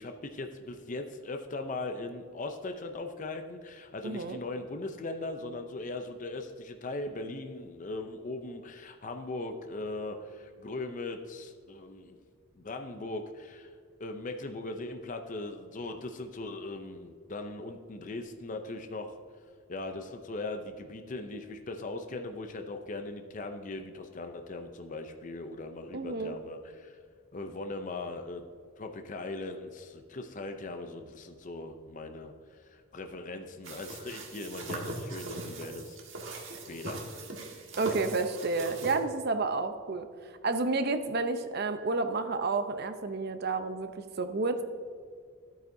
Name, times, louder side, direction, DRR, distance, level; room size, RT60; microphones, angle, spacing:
voice 1, 0.0-12.2 12.6-13.7 14.0-19.2 19.7-26.9 27.3-28.4 28.8-36.0 36.7-37.1, left 2 dB, 40° left, 6 dB, 0.5 m, -39 dB
voice 2, 4.0-4.4 25.9-26.3 37.8-40.1 40.4-43.9 44.2-44.6, right 3 dB, 50° right, 8 dB, 0.6 m, -30 dB
sound 1, 33.6-39.0, right 2 dB, 65° right, 1.6 m, -40 dB
11.5 x 8.9 x 2.7 m, 2.1 s
head